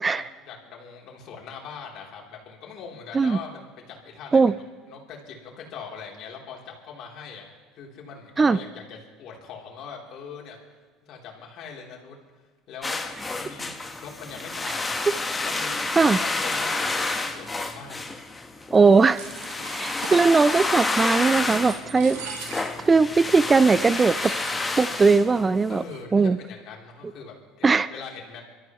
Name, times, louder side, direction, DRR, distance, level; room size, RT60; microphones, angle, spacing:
voice 1, 0.1-4.4 4.9-7.4 7.8-10.6 11.0-12.2 12.7-13.0 13.3-15.0 15.3-18.1 25.7-28.4, left 6 dB, 60° left, -1 dB, 3.4 m, -41 dB
sound 1, 12.8-25.8, left 3 dB, 20° left, 1.2 m, -29 dB
voice 2, 18.7-19.2 19.7-22.2 22.9-24.3 24.8-25.8 26.1-26.4 27.6-27.9, right 4 dB, 25° right, 17 dB, 0.4 m, -19 dB
sound 2, 18.7-20.4 20.9-21.4 21.7-22.9 23.2-23.3 23.7-25.1 25.3-25.4 25.7-26.2, right 7 dB, 80° right, 1.4 m, -41 dB
25.5 x 13.0 x 3.1 m, 1.3 s
hypercardioid pair, 80°, 0 cm